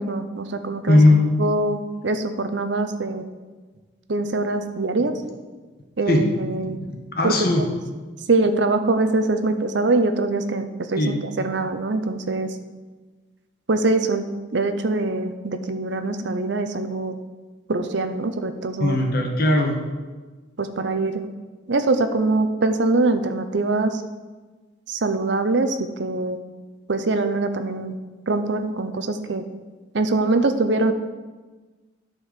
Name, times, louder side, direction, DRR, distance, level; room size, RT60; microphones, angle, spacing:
voice 1, 0.0-1.0 1.4-3.2 4.1-5.1 6.0-6.8 7.2-7.5 8.3-11.0 11.4-12.5 13.7-14.2 14.5-17.1 17.7-19.0 20.6-21.1 21.7-23.9 24.9-26.4 26.9-27.9 28.3-29.4 29.9-30.9, right 2 dB, 70° right, 9 dB, 0.7 m, -23 dB
voice 2, 0.9-1.2 6.1-6.2 6.9-7.6 11.0-11.2 18.8-19.7, left 1 dB, 50° left, 2 dB, 1.4 m, -18 dB
9.6 x 4.6 x 6.7 m, 1.3 s
head